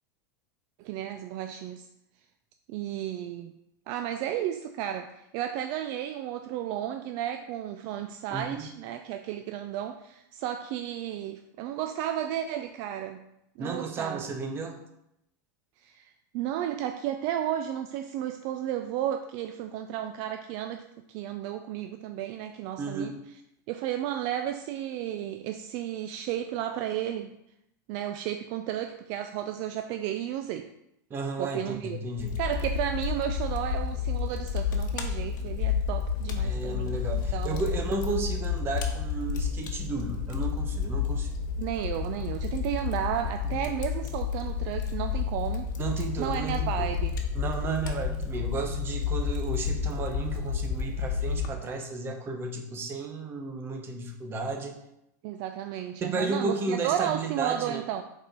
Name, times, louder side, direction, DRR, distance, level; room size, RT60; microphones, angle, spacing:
voice 1, 0.8-1.9 2.7-3.5 3.9-13.2 13.6-14.3 15.8-23.1 23.7-27.3 27.9-30.7 31.4-32.0 32.4-37.0 37.3-37.6 41.6-45.7 46.2-47.2 55.2-58.0, right 11 dB, 50° right, 7 dB, 0.4 m, -33 dB
voice 2, 8.3-8.7 13.6-14.8 22.8-23.1 31.1-32.4 36.4-41.3 43.4-43.7 45.8-46.9 47.4-54.8 56.0-57.8, right 3 dB, 25° right, 4 dB, 0.8 m, -33 dB
Fire, 32.2-51.5, left 6 dB, 80° left, 1.0 m, -30 dB
5.2 x 4.2 x 4.5 m, 0.83 s
supercardioid pair, 145°, 10 cm